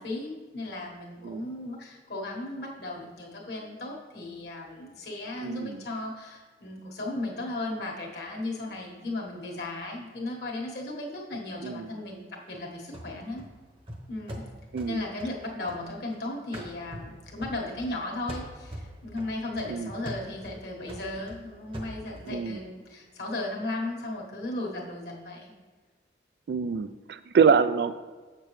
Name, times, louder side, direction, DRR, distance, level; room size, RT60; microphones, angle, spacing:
voice 1, 0.0-13.4 14.1-14.4 14.9-25.5, left 2 dB, 70° left, -1 dB, 1.4 m, -36 dB
voice 2, 5.4-5.8 11.6-11.9 14.7-15.0 19.7-19.9 22.3-22.6 26.5-28.1, right 6 dB, 65° right, 13 dB, 0.3 m, -25 dB
sound 1, 12.9-16.2 16.5-18.0 18.3-22.4, equal, 30° right, 0.9 m, -42 dB
7.6 x 6.7 x 3.1 m, 1.4 s
head